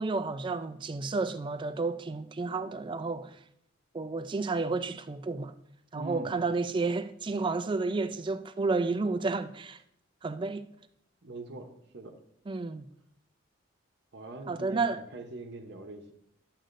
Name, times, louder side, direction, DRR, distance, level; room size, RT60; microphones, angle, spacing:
voice 1, 0.0-3.4 3.9-5.5 5.9-9.8 10.2-10.7 12.5-12.9 14.5-15.0, right 3 dB, 25° right, 0.4 m, -31 dB
voice 2, 5.9-6.4 11.2-12.2 14.1-16.1, right 2 dB, 60° right, 0.9 m, -42 dB
11.0 x 7.6 x 2.6 m
head